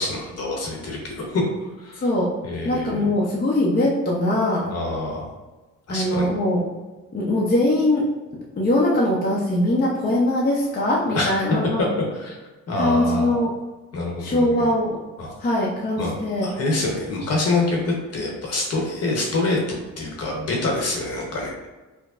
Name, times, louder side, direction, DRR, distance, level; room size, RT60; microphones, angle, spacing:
voice 1, 0.0-1.4 1.8-2.0 2.4-3.1 4.7-5.3 5.9-6.3 11.1-11.3 12.1-12.4 12.7-13.4 13.9-14.7 15.2-15.5 16.0-16.1 16.4-21.5, left 2 dB, 55° left, -1 dB, 1.1 m, -26 dB
voice 2, 1.9-2.3 2.6-4.7 5.9-6.6 7.1-8.1 8.6-11.9 12.8-13.5 14.2-15.0 15.4-16.5, left 1 dB, 30° left, -4 dB, 0.7 m, -21 dB
4.7 x 2.2 x 2.4 m, 1.2 s
cardioid pair, 90°, 30 cm